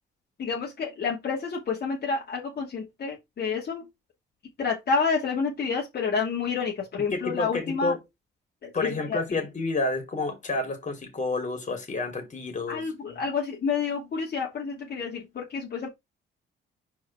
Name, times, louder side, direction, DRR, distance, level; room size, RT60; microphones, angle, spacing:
voice 1, 0.4-3.9 4.6-8.0 8.6-9.4 12.7-15.9, left 5 dB, 55° left, 2.6 m, -29 dB
voice 2, 7.1-8.0 8.7-12.8, left 3 dB, 35° left, 3.4 m, -29 dB
5.3 x 4.8 x 4.9 m
cardioid pair, 90°, 20 cm